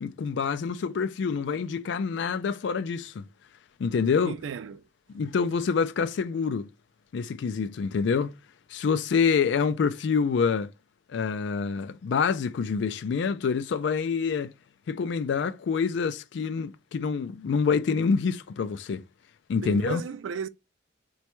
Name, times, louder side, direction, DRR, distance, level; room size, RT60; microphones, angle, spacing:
voice 1, 0.0-3.2 3.8-4.4 5.1-6.7 7.1-8.4 8.7-10.7 11.1-14.5 14.9-19.0 19.5-20.0, left 5 dB, 65° left, 0.3 m, -26 dB
voice 2, 4.2-4.8 19.6-20.5, right 6 dB, 75° right, 0.3 m, -34 dB
4.2 x 2.2 x 3.0 m
head